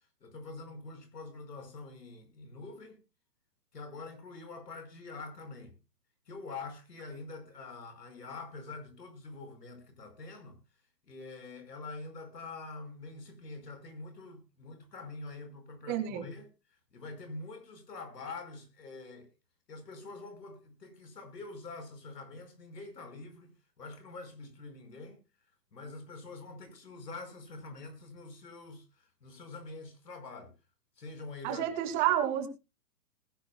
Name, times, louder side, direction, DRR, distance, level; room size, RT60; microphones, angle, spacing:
voice 1, 0.2-3.0 3.7-5.8 6.3-10.6 11.0-19.3 19.7-23.5 23.8-25.2 25.7-30.5 31.0-31.9, left 3 dB, 90° left, 5.2 m, -45 dB
voice 2, 15.9-16.2 31.4-32.5, right 11 dB, 30° right, 2.5 m, -29 dB
20.0 x 10.5 x 2.3 m
hypercardioid pair, 150°, 47 cm